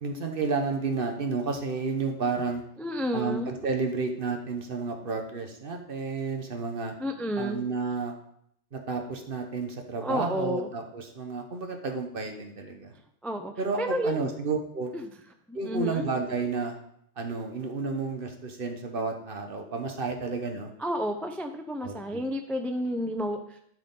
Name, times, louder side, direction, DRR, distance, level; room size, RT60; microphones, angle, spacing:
voice 1, 0.0-2.6 3.1-6.9 7.4-8.2 8.7-12.9 13.6-14.9 15.5-16.8 17.2-20.7 21.8-22.2, right 4 dB, 55° right, 4 dB, 1.2 m, -31 dB
voice 2, 2.8-3.5 7.0-7.6 10.0-10.7 13.2-14.3 14.9-15.1 15.5-16.0 20.8-23.6, equal, ahead, 6 dB, 0.4 m, -31 dB
12.0 x 5.0 x 3.8 m, 0.71 s
omnidirectional pair, 1.1 m